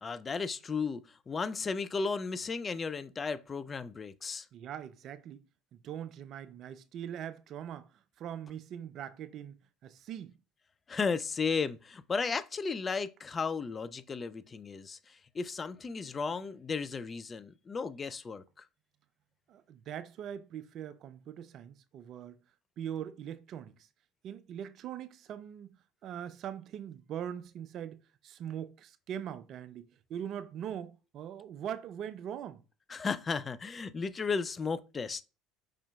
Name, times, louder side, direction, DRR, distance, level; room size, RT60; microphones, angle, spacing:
voice 1, 0.0-4.5 10.9-18.4 32.9-35.2, left 5 dB, 30° left, 0.4 m, -34 dB
voice 2, 4.5-5.4 5.7-7.9 8.2-9.6 9.8-10.3 19.5-22.3 22.8-23.7 24.2-25.7 26.0-28.0 28.2-29.8 30.1-32.6, right 9 dB, 55° right, 0.4 m, -41 dB
4.9 x 4.3 x 2.3 m
hypercardioid pair, 65°, 0 cm